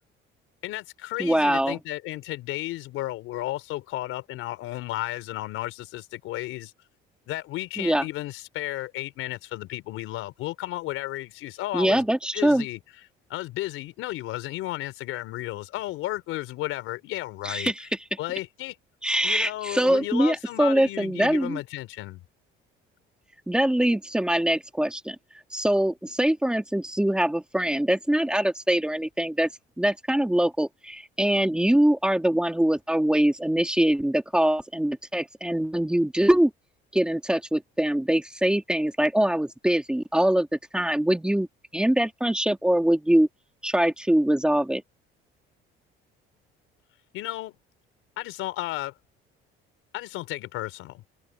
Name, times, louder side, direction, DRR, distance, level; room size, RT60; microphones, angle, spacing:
voice 1, 0.6-6.7 7.3-12.0 12.3-12.8 13.3-17.7 18.2-18.7 19.2-22.2 47.1-47.6 48.2-48.9 49.9-51.0, left 17 dB, 85° left, 4.4 m, -33 dB
voice 2, 1.2-1.8 7.8-8.0 11.7-12.7 17.4-17.9 19.0-21.6 23.5-25.2 25.5-29.5 29.8-36.5 36.9-41.5 41.7-43.3 43.6-44.8, right 1 dB, 5° right, 2.2 m, -23 dB
cardioid pair, 150°, 21 cm